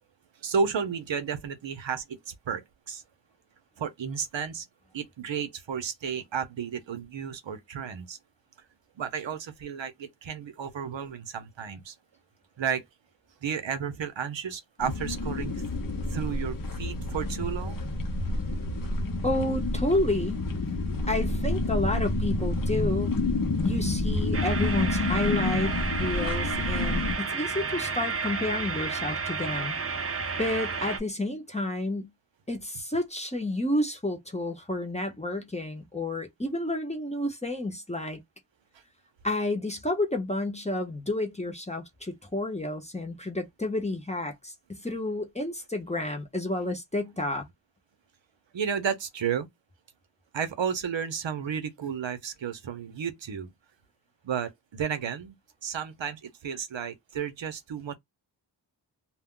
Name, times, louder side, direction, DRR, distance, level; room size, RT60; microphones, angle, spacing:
voice 1, 0.4-3.0 3.8-4.7 4.9-8.2 9.0-11.9 12.6-12.8 13.4-15.6 16.1-17.8 48.5-49.5 50.3-53.5 54.2-55.4 55.6-58.0, right 7 dB, 80° right, 0.7 m, -32 dB
sound 1, 14.8-27.2, left 2 dB, 50° left, 0.7 m, -29 dB
voice 2, 19.2-20.4 21.1-23.2 23.6-25.7 26.0-30.1 30.4-32.1 32.5-38.2 39.2-47.5, left 1 dB, 15° left, 0.7 m, -30 dB
sound 2, 24.3-31.0, right 4 dB, 35° right, 0.5 m, -31 dB
2.2 x 2.1 x 3.6 m
wide cardioid pair, 70°, 44 cm